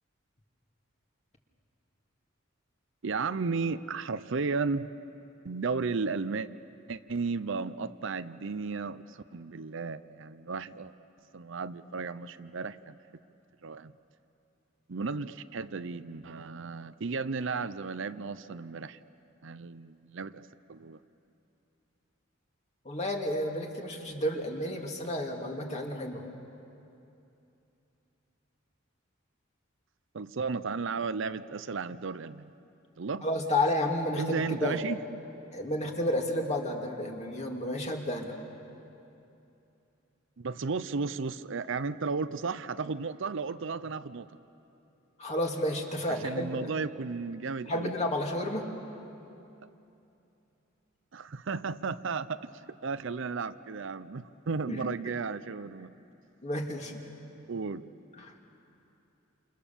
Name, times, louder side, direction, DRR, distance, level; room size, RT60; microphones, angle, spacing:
voice 1, 3.0-4.9 5.4-6.5 6.9-10.9 11.3-13.0 13.6-13.9 14.9-19.0 19.4-21.0 30.1-32.5 33.0-33.2 34.2-35.2 40.4-44.3 46.1-47.9 51.1-52.4 52.8-55.9 57.5-57.8, right 4 dB, 65° right, 13 dB, 0.6 m, -34 dB
voice 2, 22.8-26.2 33.2-34.8 35.5-38.4 45.2-46.7 47.7-48.6 54.7-54.8 56.4-56.9 58.2-58.3, left 1 dB, 35° left, 1 dB, 2.5 m, -31 dB
28.5 x 28.0 x 7.1 m, 2.8 s
head